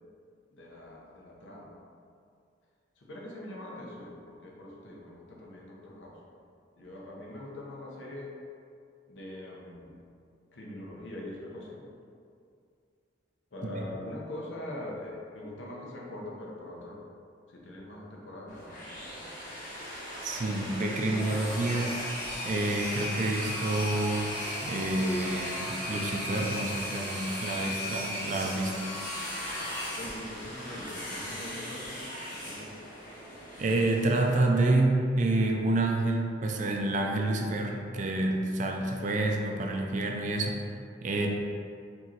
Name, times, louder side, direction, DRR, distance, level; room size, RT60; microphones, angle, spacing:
voice 1, 0.5-1.8 3.0-6.1 6.7-8.3 9.1-10.0 10.5-11.8 13.5-17.0 17.5-18.7 30.0-32.0 32.3-32.7 38.7-38.9, left 1 dB, 80° left, -3 dB, 0.8 m, -42 dB
sound 1, 18.5-34.4, left 1 dB, 45° left, 1.2 m, -37 dB
voice 2, 20.2-22.0 22.4-24.3 24.6-28.7 33.6-40.6 41.0-41.3, right 2 dB, 40° right, 1 dB, 0.4 m, -28 dB
4.6 x 3.0 x 2.9 m, 2.3 s
head